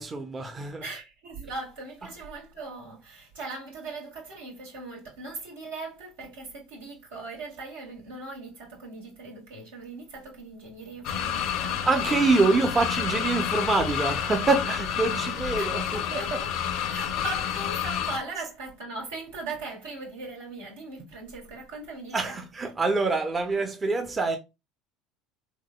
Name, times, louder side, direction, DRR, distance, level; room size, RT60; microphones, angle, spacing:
voice 1, 0.0-0.8 11.9-16.4 22.1-24.4, right 3 dB, 25° right, 0.6 m, -25 dB
voice 2, 0.8-11.9 15.6-16.5 16.9-22.4, right 3 dB, 85° right, 1.8 m, -39 dB
sound 1, 11.0-18.2, left 9 dB, 65° left, 0.5 m, -29 dB
3.7 x 3.0 x 2.2 m
hypercardioid pair, 75°, 0 cm